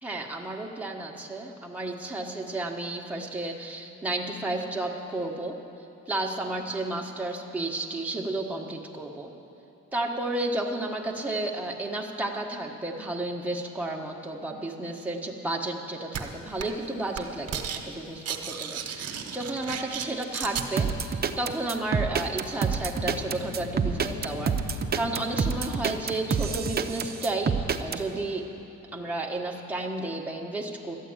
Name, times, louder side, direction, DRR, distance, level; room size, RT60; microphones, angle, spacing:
voice 1, 0.0-5.6 6.1-9.3 9.9-28.5 28.9-30.9, right 2 dB, 5° right, -1 dB, 1.4 m, -32 dB
sound 1, 16.1-16.2 16.6-16.9 17.1-17.8 18.1-20.7, right 8 dB, 55° right, 1.3 m, -34 dB
sound 2, 20.8-28.0, right 6 dB, 30° right, 0.7 m, -27 dB
sound 3, 23.0-29.2, left 9 dB, 60° left, 0.7 m, -42 dB
13.0 x 8.2 x 8.9 m, 2.9 s
cardioid pair, 90°, 30 cm